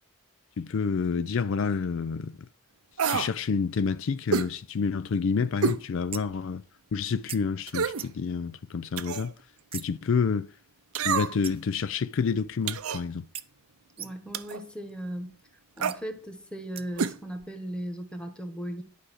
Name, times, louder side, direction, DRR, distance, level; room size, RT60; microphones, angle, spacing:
voice 1, 0.6-2.5 3.1-6.6 6.9-9.3 9.7-10.5 11.0-13.3, left 5 dB, 60° left, 0.4 m, -28 dB
sound 1, 3.0-3.3 4.3-4.5 5.6-5.8 6.3-6.4 7.7-8.1 9.0-9.3 10.9-11.5 12.7-13.0 14.3-14.6 15.8-16.0 17.0-17.2 17.4-17.5, right 6 dB, 80° right, 0.7 m, -28 dB
sound 2, 6.1-6.5 7.3-7.4 8.0-8.3 9.7-10.0 11.4-11.8 13.3-13.4 14.0-14.4 15.9-16.0 16.8-17.1, right 9 dB, 25° right, 0.5 m, -41 dB
voice 2, 14.0-15.4 15.8-18.8, right 1 dB, 5° left, 1.4 m, -37 dB
11.5 x 5.0 x 6.3 m
head